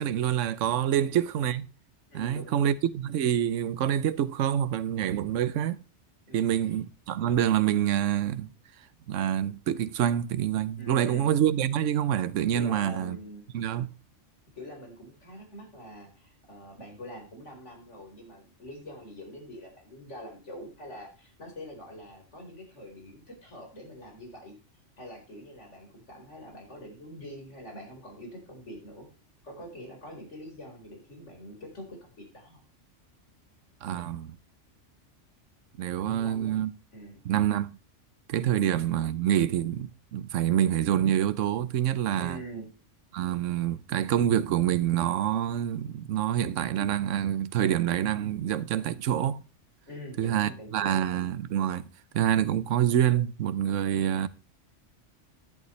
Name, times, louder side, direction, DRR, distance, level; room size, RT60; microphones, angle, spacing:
voice 1, 0.0-1.7 2.1-5.8 6.3-8.5 9.1-13.2 13.5-13.9 33.8-34.3 35.8-36.7 37.2-37.7 38.3-42.4 43.1-49.4 50.2-51.8 52.1-54.3, right 10 dB, 85° right, 1.1 m, -26 dB
voice 2, 0.9-1.3 2.1-2.7 6.3-6.8 10.8-11.3 12.5-13.4 14.5-24.5 25.0-29.1 29.4-32.6 36.0-36.6 36.9-37.2 42.2-42.7 49.9-51.0 53.9-54.2, equal, 70° left, 4.6 m, -44 dB
11.0 x 10.5 x 3.2 m
omnidirectional pair, 1.2 m